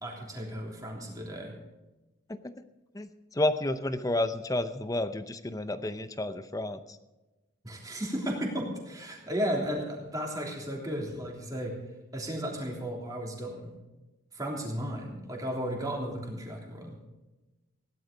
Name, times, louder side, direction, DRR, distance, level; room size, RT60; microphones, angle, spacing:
voice 1, 0.0-1.5 7.6-11.7 12.1-13.7 14.3-17.0, equal, 15° right, -1 dB, 3.3 m, -34 dB
voice 2, 2.9-7.0, left 1 dB, 15° left, 11 dB, 0.6 m, -31 dB
17.0 x 11.5 x 5.1 m, 1.1 s
head